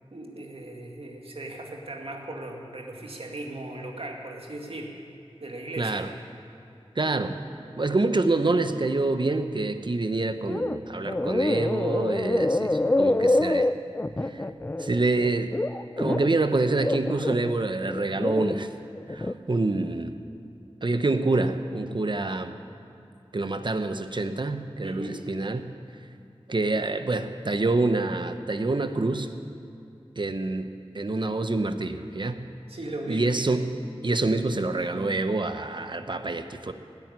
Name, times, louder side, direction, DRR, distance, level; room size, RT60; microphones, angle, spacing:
voice 1, 0.1-4.9 5.4-6.1 24.8-25.2 32.7-33.5, right 1 dB, 65° right, 1 dB, 2.2 m, -37 dB
voice 2, 5.8-6.1 7.0-7.4 7.8-13.7 14.2-14.5 14.8-15.6 16.0-18.7 19.1-20.1 20.8-22.6 23.3-25.7 26.5-29.3 30.2-32.4 33.1-33.7 34.0-36.7, right 2 dB, 50° right, 9 dB, 0.9 m, -26 dB
sound 1, 10.5-10.8 11.0-16.4 16.8-18.5 19.0-19.3, left 2 dB, 20° left, 0.5 m, -26 dB
16.5 x 9.1 x 9.5 m, 2.7 s
wide cardioid pair, 70°, 10 cm